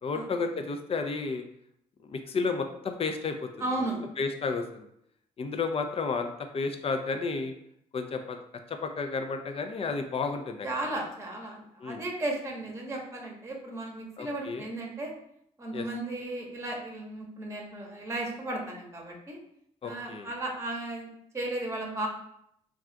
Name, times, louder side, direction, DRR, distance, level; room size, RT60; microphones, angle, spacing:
voice 1, 0.0-1.4 2.1-3.5 4.2-4.9 5.4-6.3 6.5-7.5 7.9-8.4 8.7-10.7 11.8-12.0 14.2-14.7 15.7-15.9 19.8-20.3, left 4 dB, 40° left, 6 dB, 0.4 m, -32 dB
voice 2, 3.6-4.0 10.6-15.1 15.6-19.4 19.8-21.1 21.3-22.1, right 2 dB, 20° right, 0 dB, 0.8 m, -35 dB
2.4 x 2.3 x 3.7 m, 0.73 s
supercardioid pair, 65°, 15 cm